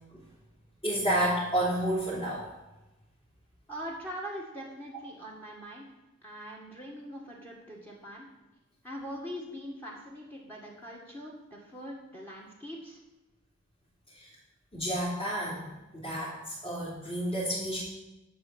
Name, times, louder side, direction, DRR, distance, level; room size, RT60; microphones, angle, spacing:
voice 1, 0.8-2.5 14.1-14.3 14.7-17.8, right 1 dB, 25° left, -10 dB, 3.7 m, -30 dB
voice 2, 3.7-5.9 6.2-8.3 8.8-13.0, equal, 10° left, -3 dB, 2.0 m, -42 dB
11.5 x 6.1 x 8.7 m, 1.0 s
head